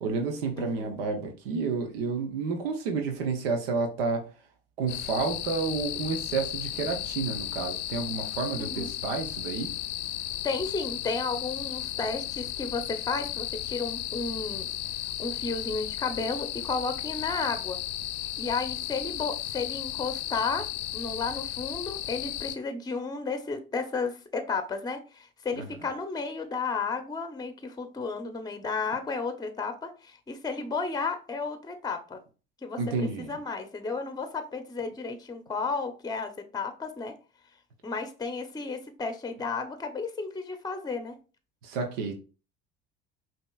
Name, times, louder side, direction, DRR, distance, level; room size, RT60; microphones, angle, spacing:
voice 1, 0.0-4.3 4.8-9.7 32.8-33.3 41.6-42.1, right 4 dB, 85° right, 0.8 m, -30 dB
voice 2, 0.6-1.0 8.6-8.9 10.4-14.7 15.2-17.8 18.4-20.7 20.9-32.2 32.6-37.1 37.8-41.2, left 4 dB, 15° left, 0.7 m, -33 dB
sound 1, 4.9-22.6, left 13 dB, 70° left, 0.5 m, -35 dB
5.1 x 2.9 x 2.3 m
hypercardioid pair, 70°, 29 cm